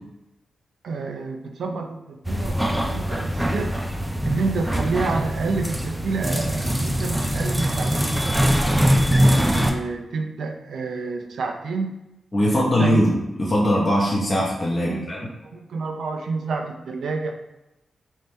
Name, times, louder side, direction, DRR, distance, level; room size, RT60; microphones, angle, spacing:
voice 1, 0.8-3.8 4.2-8.1 9.2-12.0 12.4-13.0 14.7-17.3, right 4 dB, 80° right, 4 dB, 0.5 m, -29 dB
sound 1, 2.2-9.7, equal, 5° right, 0.4 m, -22 dB
voice 2, 12.3-15.2, equal, 20° left, -5 dB, 0.8 m, -21 dB
3.3 x 2.7 x 4.3 m, 0.93 s
wide cardioid pair, 110°, 0 cm